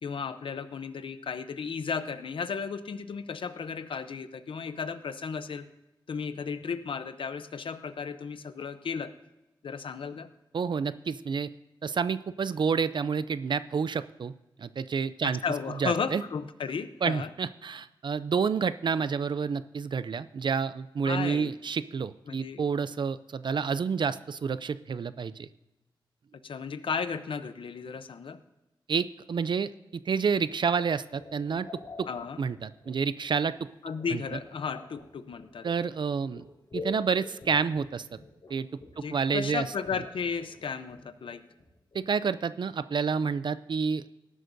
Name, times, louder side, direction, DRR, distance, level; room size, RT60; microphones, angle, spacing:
voice 1, 0.0-5.7 6.1-9.1 9.6-10.3 15.2-17.3 21.0-21.5 22.3-22.6 26.4-28.4 32.1-32.4 33.8-35.7 39.0-41.4, left 6 dB, 85° left, 11 dB, 0.6 m, -34 dB
voice 2, 10.5-11.5 11.8-14.3 14.6-15.4 15.8-16.2 17.0-25.5 28.9-29.7 30.1-31.7 32.0-32.1 32.4-33.7 34.1-34.2 35.6-36.4 36.7-38.1 38.5-38.7 39.1-39.6 41.9-44.0, right 6 dB, 65° right, 14 dB, 0.4 m, -29 dB
sound 1, 30.4-42.1, left 3 dB, 60° left, 4.3 m, -47 dB
19.0 x 11.0 x 2.6 m, 0.99 s
wide cardioid pair, 110°, 9 cm